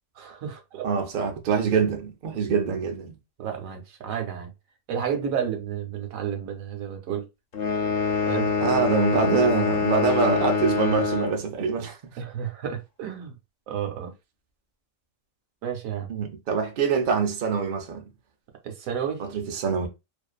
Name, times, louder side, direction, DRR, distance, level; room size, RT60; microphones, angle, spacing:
voice 1, 0.2-0.9 3.4-4.5 4.9-7.3 8.3-8.5 12.2-13.4 13.7-14.1 15.6-16.1 18.6-19.3, right 8 dB, 90° right, 1.1 m, -31 dB
voice 2, 0.8-3.1 8.6-12.0 16.1-18.0 19.2-19.9, right 5 dB, 55° right, 0.6 m, -24 dB
sound 1, 7.5-11.4, left 5 dB, 50° left, 0.8 m, -25 dB
2.5 x 2.2 x 2.3 m
omnidirectional pair, 1.4 m